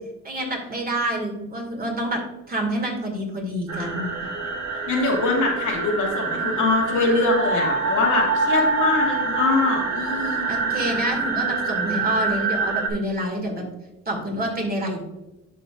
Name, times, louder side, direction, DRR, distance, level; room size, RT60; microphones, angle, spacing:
voice 1, 0.2-2.2 2.5-4.1 10.5-13.6 14.1-15.0, right 1 dB, 30° right, 1 dB, 2.2 m, -27 dB
sound 1, 3.7-12.9, right 3 dB, 60° right, 1.5 m, -25 dB
voice 2, 4.9-10.5, left 3 dB, 80° left, -2 dB, 2.3 m, -23 dB
10.5 x 5.5 x 2.5 m, 0.98 s
cardioid pair, 90°, 30 cm